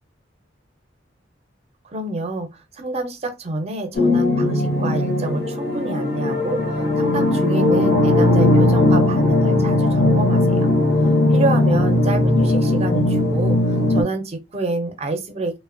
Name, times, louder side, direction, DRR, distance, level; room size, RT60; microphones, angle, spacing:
voice 1, 1.8-10.7 11.3-15.6, right 2 dB, 35° right, 0.5 m, -28 dB
sound 1, 3.9-14.0, left 1 dB, 60° left, 0.8 m, -18 dB
2.9 x 2.1 x 2.4 m
head